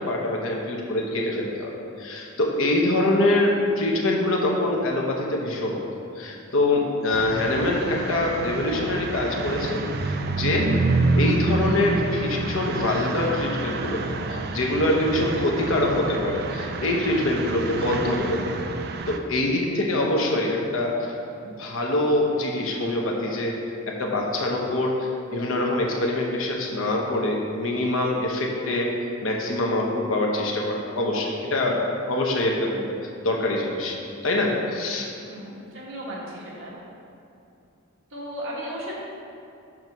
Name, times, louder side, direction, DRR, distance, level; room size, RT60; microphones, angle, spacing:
voice 1, 0.0-1.7 2.0-5.8 6.2-10.7 11.1-14.0 14.3-18.5 19.1-21.1 21.4-23.5 23.9-28.9 29.2-31.8 32.1-32.9 33.2-34.0 34.2-35.1, left 1 dB, 75° left, -1 dB, 1.0 m, -24 dB
sound 1, 7.1-19.2, right 3 dB, 50° right, 0.4 m, -28 dB
voice 2, 35.2-36.7 38.1-39.0, equal, 70° right, -5 dB, 1.7 m, -35 dB
6.2 x 4.0 x 6.1 m, 2.6 s
head